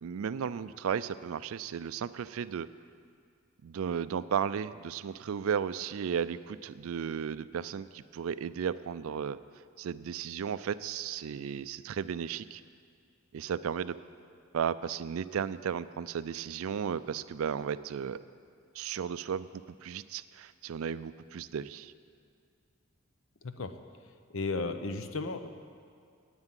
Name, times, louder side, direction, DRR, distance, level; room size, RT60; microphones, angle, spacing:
voice 1, 0.0-2.7 3.6-9.4 9.8-12.6 13.3-14.0 14.5-18.2 18.7-21.9, right 7 dB, 70° right, 15 dB, 0.4 m, -34 dB
voice 2, 23.4-23.8 24.3-25.5, left 3 dB, 65° left, 9 dB, 0.7 m, -34 dB
9.6 x 8.9 x 9.1 m, 2.2 s
head